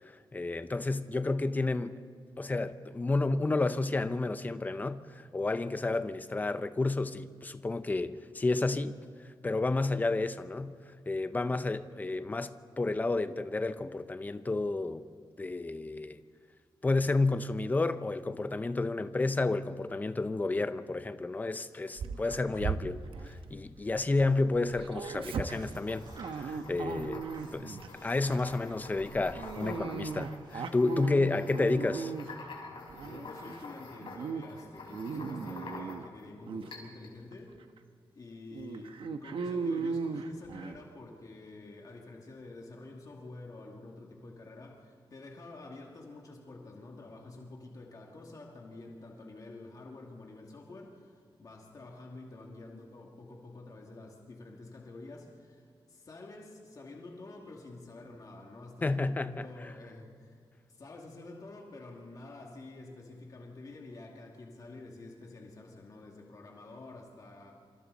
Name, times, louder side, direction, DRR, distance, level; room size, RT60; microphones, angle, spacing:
voice 1, 0.3-2.0 2.4-5.0 5.3-9.0 9.4-10.7 11.1-15.0 15.4-16.2 16.8-26.1 26.4-32.1 58.8-59.5, left 3 dB, 20° left, 0.7 m, -31 dB
Dog, 22.0-24.3 24.5-27.9 28.3-28.6 29.3-32.5 32.9-33.6 34.0-34.4 34.8-36.0 36.4-36.7 37.3-37.4 37.8-37.9 38.5-40.8, right 5 dB, 85° right, 1.1 m, -37 dB
sound 1, 24.3-30.9, right 1 dB, 60° right, 6.7 m, -55 dB
sound 2, 25.2-36.2 36.7-37.1, left 3 dB, 75° left, 4.3 m, -48 dB
voice 2, 31.1-31.5 33.0-37.6 38.1-60.4 60.7-67.5, left 2 dB, 45° left, 2.5 m, -48 dB
26.5 x 25.5 x 4.1 m
wide cardioid pair, 170°, 9 cm